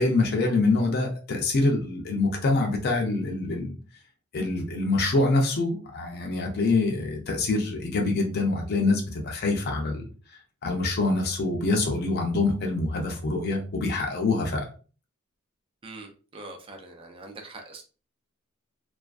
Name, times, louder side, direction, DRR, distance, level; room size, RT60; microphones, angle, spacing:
voice 1, 0.0-3.7 4.3-10.0 10.6-14.7, left 3 dB, 50° left, 2 dB, 0.5 m, -25 dB
voice 2, 15.8-17.8, right 2 dB, 25° right, 3 dB, 0.4 m, -43 dB
2.4 x 2.3 x 2.3 m, 0.37 s
head